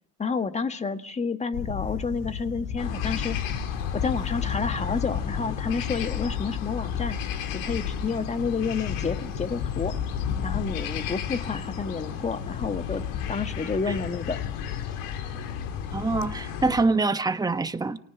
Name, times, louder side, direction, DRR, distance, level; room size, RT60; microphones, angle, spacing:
voice 1, 0.2-3.4 3.9-7.2 7.5-9.9 10.4-13.0 13.3-14.4, left 5 dB, 15° left, 1.6 m, -30 dB
Camera, 1.5-16.3, left 7 dB, 70° left, 7.6 m, -34 dB
sound 1, 2.8-16.9, left 8 dB, 85° left, 3.8 m, -35 dB
voice 2, 15.9-18.0, right 3 dB, 10° right, 1.2 m, -25 dB
29.5 x 28.0 x 6.0 m
cardioid pair, 140°, 38 cm